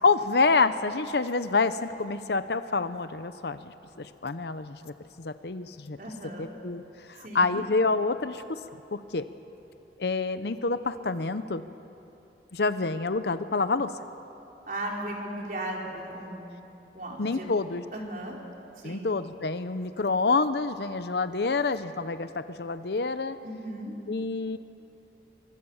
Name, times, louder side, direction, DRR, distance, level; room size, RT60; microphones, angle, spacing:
voice 1, 0.0-4.9 5.2-6.0 6.4-6.8 7.1-8.6 8.9-9.3 10.0-11.6 12.5-13.9 17.2-17.8 18.8-23.4 24.1-24.6, left 3 dB, 70° left, 12 dB, 0.7 m, -27 dB
voice 2, 6.0-6.5 7.2-7.6 14.7-16.5 16.9-17.5 17.9-18.4 18.8-19.1 23.4-23.9, right 1 dB, 50° right, -1 dB, 4.2 m, -36 dB
26.5 x 24.0 x 7.2 m, 2.9 s
head